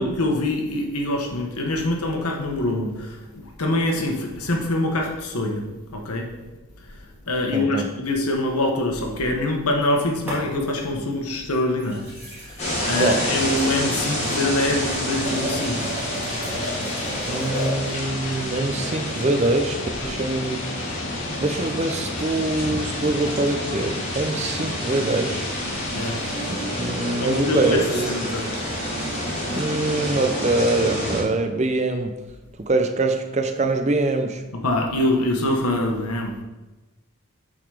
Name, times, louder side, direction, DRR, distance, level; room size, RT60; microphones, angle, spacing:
voice 1, 0.0-6.3 6.8-7.0 7.3-15.9 25.9-26.3 27.2-27.8 28.1-28.5 34.5-36.4, left 1 dB, 90° left, 1 dB, 1.2 m, -25 dB
voice 2, 7.5-7.9 13.0-13.2 17.3-20.7 21.4-25.5 26.5-28.1 29.5-32.2 32.6-34.4, right 2 dB, 30° right, 7 dB, 0.5 m, -24 dB
sound 1, 8.9-9.9 10.3-10.9 11.5-18.0 19.9-20.1, equal, 10° right, 2.5 m, -35 dB
sound 2, 12.6-31.2, equal, 30° left, 1.7 m, -29 dB
sound 3, 14.6-29.9, left 3 dB, 55° left, 0.6 m, -37 dB
7.4 x 4.0 x 4.8 m, 1.1 s
head